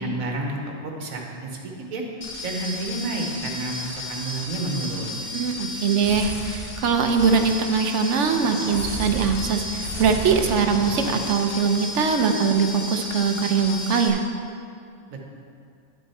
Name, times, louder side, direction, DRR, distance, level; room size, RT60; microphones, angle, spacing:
voice 1, 0.0-2.0 2.4-5.1 15.1-15.3, right 2 dB, 85° right, 1 dB, 1.6 m, -30 dB
sound 1, 2.2-14.1, left 1 dB, 45° left, 1.5 m, -33 dB
voice 2, 5.3-14.2, right 5 dB, 65° right, 5 dB, 1.0 m, -22 dB
sound 2, 8.3-11.9, left 1 dB, 80° left, 1.8 m, -38 dB
10.5 x 6.8 x 4.3 m, 2.4 s
omnidirectional pair, 1.4 m